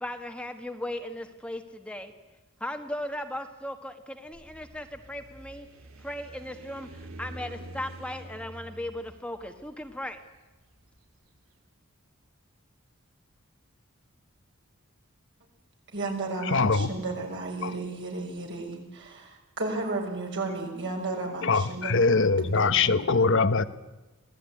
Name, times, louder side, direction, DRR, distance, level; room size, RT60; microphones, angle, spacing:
voice 1, 0.0-2.1 2.6-5.7 6.0-10.2, left 1 dB, 5° left, 6 dB, 1.4 m, -37 dB
sound 1, 4.2-11.4, right 1 dB, 90° right, 3.2 m, -47 dB
voice 2, 15.9-23.1, right 2 dB, 60° right, 2 dB, 6.5 m, -34 dB
voice 3, 16.5-16.9 17.6-17.7 21.4-23.6, left 4 dB, 65° left, 12 dB, 1.1 m, -22 dB
25.5 x 18.0 x 9.7 m, 1.1 s
head